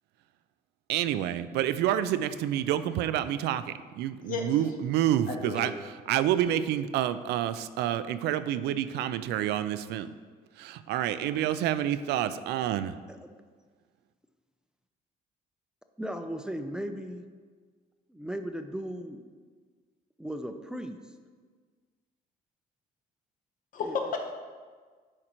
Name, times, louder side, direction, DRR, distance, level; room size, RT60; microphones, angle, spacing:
voice 1, 0.9-5.7 6.1-10.1 10.6-12.9, right 11 dB, 80° right, 12 dB, 0.4 m, -28 dB
voice 2, 5.3-5.7 23.7-24.3, left 5 dB, 55° left, 3 dB, 1.0 m, -32 dB
voice 3, 16.0-17.2 18.1-19.2 20.2-21.0 23.8-24.0, equal, 5° right, 6 dB, 0.4 m, -36 dB
10.5 x 5.0 x 3.0 m, 1.5 s
cardioid pair, 110°, 17 cm